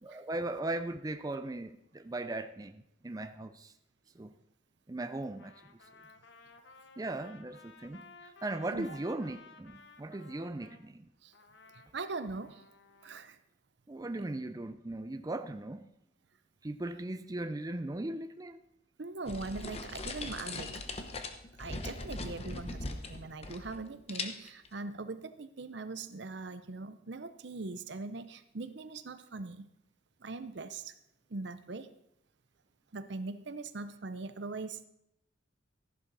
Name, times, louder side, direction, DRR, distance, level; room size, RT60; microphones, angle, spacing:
voice 1, 0.0-3.7 4.2-4.3 4.9-5.8 7.0-11.1 13.9-15.9 16.6-18.6, right 2 dB, 20° right, 0.4 m, -38 dB
Trumpet, 5.3-10.8 11.3-13.3, left 4 dB, 65° left, 1.0 m, -56 dB
voice 2, 11.7-12.6 13.0-13.4 19.0-21.1 21.6-29.6 30.2-30.9 31.3-31.9 32.9-34.9, right 3 dB, 60° right, 0.7 m, -41 dB
sound 1, 19.3-23.8 24.1-24.7, left 3 dB, 30° left, 0.9 m, -40 dB
14.5 x 11.0 x 4.0 m
head